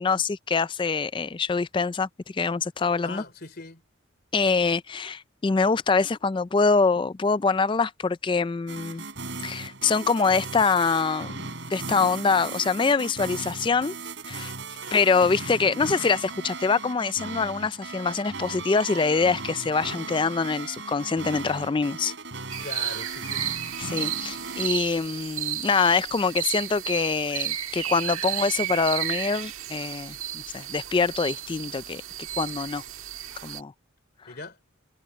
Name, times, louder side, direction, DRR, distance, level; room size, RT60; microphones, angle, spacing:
voice 1, 0.0-3.2 4.3-9.0 9.4-13.9 14.3-14.5 14.8-22.1 23.8-32.0 32.4-32.8 33.4-33.7, left 4 dB, 25° left, 0.3 m, -25 dB
voice 2, 3.0-3.8 14.8-15.1 22.6-23.4 34.3-34.6, left 3 dB, 50° left, 3.4 m, -40 dB
sound 1, 8.7-24.7, right 4 dB, 60° right, 5.4 m, -37 dB
sound 2, 22.5-33.6, right 12 dB, 80° right, 1.6 m, -33 dB
head